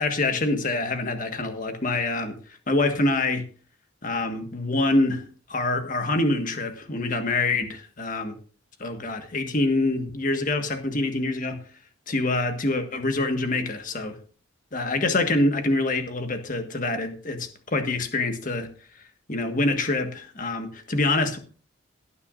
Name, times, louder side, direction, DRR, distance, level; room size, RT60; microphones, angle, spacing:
voice 1, 0.0-2.4 2.7-3.4 4.0-5.2 5.5-8.3 8.8-11.6 12.1-14.2 14.7-18.7 19.3-21.4, left 2 dB, 45° left, 6 dB, 1.6 m, -25 dB
18.0 x 9.6 x 2.6 m, 0.40 s
head